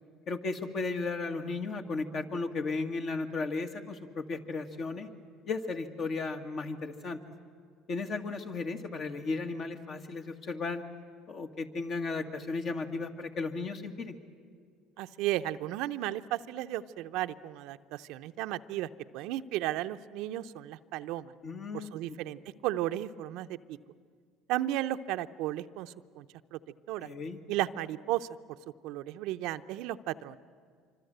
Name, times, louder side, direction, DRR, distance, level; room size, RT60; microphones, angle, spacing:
voice 1, 0.3-5.1 5.5-7.2 7.9-10.8 11.3-14.2 21.4-21.9 27.0-27.4, left 3 dB, 50° left, 5 dB, 2.1 m, -35 dB
voice 2, 15.0-21.3 21.7-23.8 24.5-26.6 26.9-27.1 27.5-28.3 28.8-30.4, right 14 dB, 70° right, 10 dB, 0.7 m, -34 dB
25.5 x 25.0 x 8.0 m, 2.1 s
supercardioid pair, 80°, 0 cm